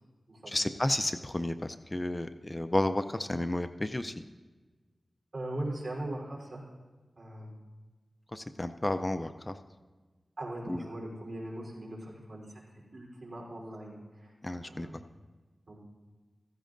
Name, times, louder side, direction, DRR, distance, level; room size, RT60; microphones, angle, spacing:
voice 1, 0.5-4.1 8.3-9.5 10.7-10.8 14.4-14.9, left 1 dB, 20° left, 9 dB, 0.4 m, -32 dB
voice 2, 5.3-6.6 7.2-7.5 10.4-12.6 12.9-14.3 14.6-15.0 15.7-15.8, right 1 dB, 60° right, -3 dB, 3.5 m, -40 dB
15.5 x 15.0 x 2.5 m, 1.3 s
wide cardioid pair, 100°, 0 cm